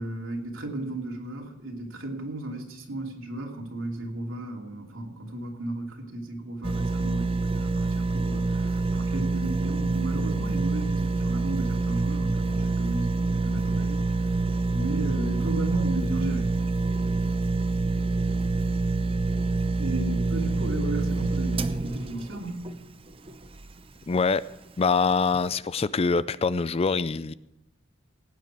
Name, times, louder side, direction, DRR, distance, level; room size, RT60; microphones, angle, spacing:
voice 1, 0.0-14.1 14.7-16.5 19.7-22.6, right 1 dB, 85° right, 0 dB, 3.0 m, -34 dB
sound 1, 6.6-23.8 24.3-24.4, right 3 dB, 30° right, 0.6 m, -26 dB
voice 2, 24.1-24.4 24.8-27.3, left 4 dB, 30° left, 17 dB, 0.4 m, -24 dB
17.5 x 9.6 x 4.6 m, 0.90 s
head